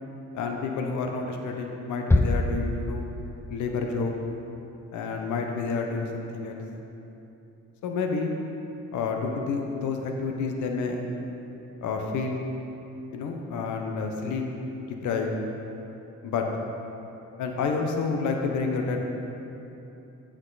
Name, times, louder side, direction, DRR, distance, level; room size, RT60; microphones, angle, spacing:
voice 1, 0.3-3.0 3.5-4.1 4.9-6.6 7.8-8.3 8.9-11.0 11.8-12.4 13.1-14.4 15.0-15.3 16.2-16.4 17.4-19.0, left 4 dB, 75° left, 2 dB, 1.0 m, -29 dB
sound 1, 2.1-3.5, left 2 dB, 10° left, 0.3 m, -24 dB
8.6 x 7.7 x 4.1 m, 2.9 s
cardioid pair, 90°, 30 cm